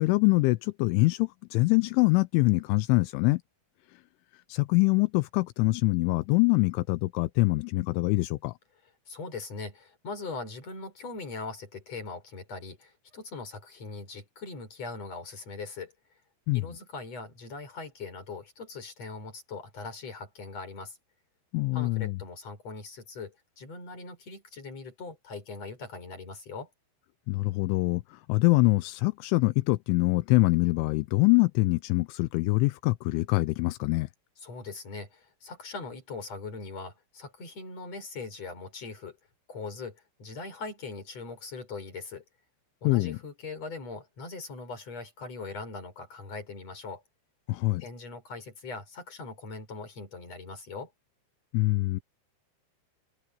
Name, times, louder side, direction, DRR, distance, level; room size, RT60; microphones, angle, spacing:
voice 1, 0.0-3.4 4.5-8.5 16.5-16.6 21.5-22.2 27.3-28.0 28.3-34.1 42.8-43.2 47.5-47.8 51.5-52.0, left 23 dB, 85° left, 2.9 m, -24 dB
voice 2, 9.1-15.9 16.5-21.0 21.7-26.7 34.4-39.2 39.5-42.2 42.8-47.0 47.8-50.9, left 4 dB, 30° left, 7.0 m, -41 dB
omnidirectional pair, 5.9 m